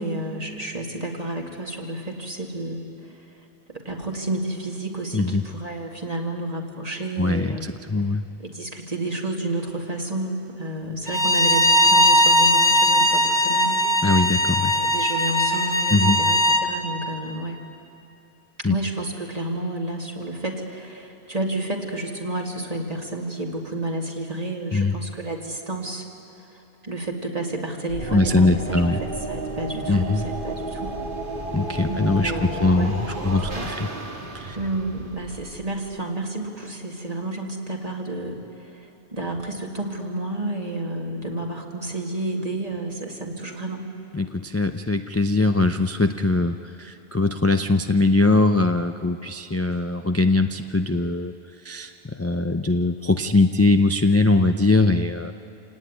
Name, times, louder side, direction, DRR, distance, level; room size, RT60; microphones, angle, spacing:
voice 1, 0.0-3.3 3.7-7.7 8.4-13.8 14.7-17.6 18.6-26.1 26.5-31.0 31.9-33.9 34.5-43.9, right 1 dB, 35° right, 1 dB, 2.4 m, -31 dB
voice 2, 7.2-8.2 14.0-14.7 15.9-16.2 18.6-18.7 24.7-24.9 28.1-29.0 29.9-30.2 31.5-33.9 34.3-34.6 44.1-51.3 51.6-55.3, left 2 dB, 20° left, 7 dB, 0.4 m, -21 dB
Bowed string instrument, 11.1-16.6, equal, 10° right, 2.2 m, -19 dB
sound 1, 27.9-36.0, right 2 dB, 50° right, 1.9 m, -32 dB
27.0 x 18.0 x 9.6 m, 2.9 s
omnidirectional pair, 1.1 m